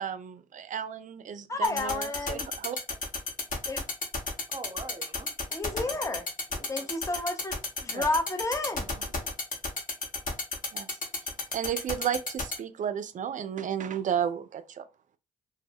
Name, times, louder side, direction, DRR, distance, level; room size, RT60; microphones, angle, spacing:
voice 1, 0.0-2.8 7.9-8.0 10.7-10.9 11.5-14.8, right 8 dB, 50° right, 0.4 m, -33 dB
voice 2, 1.5-2.5 3.7-3.8 5.5-6.3 6.7-8.9, left 2 dB, 20° left, 0.6 m, -31 dB
sound 1, 1.6-12.5, left 3 dB, 50° left, 1.0 m, -31 dB
voice 3, 4.5-5.9 6.5-6.9 8.7-9.3, right 3 dB, 25° right, 0.8 m, -45 dB
2.1 x 2.1 x 3.3 m
hypercardioid pair, 40°, 17 cm